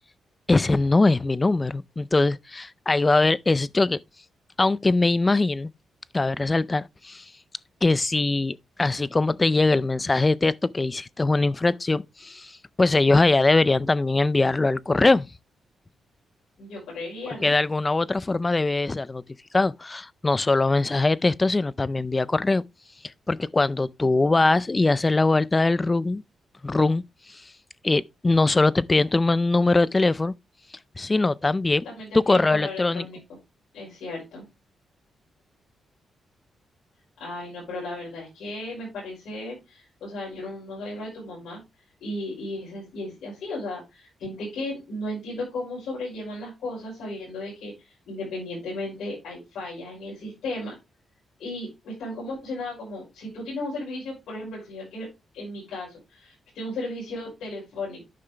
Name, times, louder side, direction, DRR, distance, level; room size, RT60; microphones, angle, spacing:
voice 1, 0.5-4.0 4.6-5.7 6.1-7.2 7.8-15.3 17.4-19.2 19.5-22.6 23.3-26.2 26.6-27.0 27.3-27.4 27.8-30.3 31.0-31.8 32.1-33.1, left 3 dB, 25° left, 0.4 m, -22 dB
voice 2, 16.6-17.5 31.8-33.2 33.7-34.4 37.2-41.6 42.0-50.7 51.4-55.1 55.3-58.0, left 2 dB, 80° left, 5.9 m, -35 dB
10.0 x 5.7 x 3.3 m
cardioid pair, 80°, 0 cm